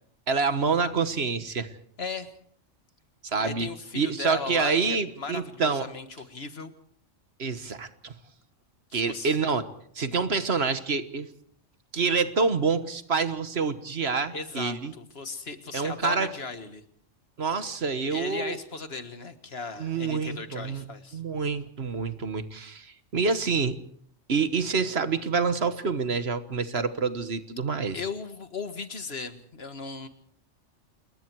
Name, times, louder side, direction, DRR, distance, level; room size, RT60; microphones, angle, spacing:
voice 1, 0.3-1.7 3.2-3.7 3.9-5.9 7.4-8.1 8.9-9.6 9.9-11.3 11.9-14.9 15.7-16.3 17.4-18.6 19.8-20.8 21.1-23.8 24.3-28.0, right 5 dB, 60° right, 11 dB, 1.5 m, -27 dB
voice 2, 2.0-2.3 3.4-6.7 8.9-9.4 14.3-16.8 18.1-21.2 27.9-30.1, left 4 dB, 55° left, 9 dB, 1.8 m, -37 dB
28.0 x 22.0 x 4.7 m, 0.62 s
omnidirectional pair, 1.3 m